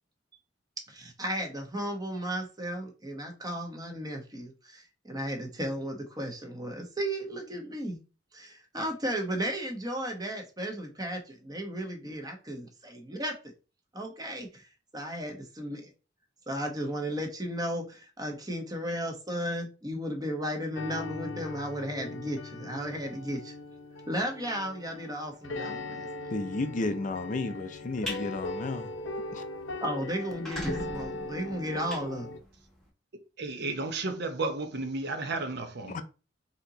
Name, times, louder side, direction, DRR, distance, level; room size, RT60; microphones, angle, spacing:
voice 1, 0.9-8.0 8.3-13.3 13.9-15.9 16.5-23.5 24.1-26.1 29.8-32.3, equal, 20° right, 1.0 m, -34 dB
sound 1, 20.7-32.4, left 2 dB, 90° left, 0.7 m, -39 dB
voice 2, 26.3-28.9 29.3-29.4 35.9-36.0, left 3 dB, 40° left, 0.4 m, -32 dB
sound 2, 27.8-28.2 28.7-28.9 29.3-29.4 29.6-29.7 30.2-32.8, left 1 dB, 5° left, 1.2 m, -39 dB
voice 3, 33.4-36.0, right 3 dB, 60° right, 0.8 m, -33 dB
4.3 x 2.9 x 3.9 m
head